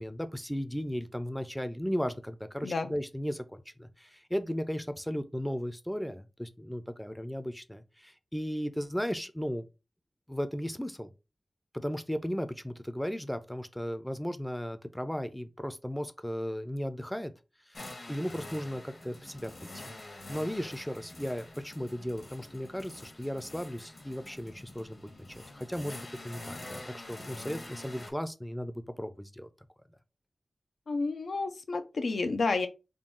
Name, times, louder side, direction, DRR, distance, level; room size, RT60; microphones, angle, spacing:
voice 1, 0.0-9.7 10.3-11.1 11.7-17.3 17.7-19.9 20.3-29.5, equal, 5° left, 0.4 m, -36 dB
sound 1, 17.7-28.1, left 2 dB, 55° left, 1.1 m, -46 dB
voice 2, 30.9-32.7, left 3 dB, 90° left, 0.5 m, -30 dB
3.7 x 2.3 x 3.7 m
wide cardioid pair, 85°, 0 cm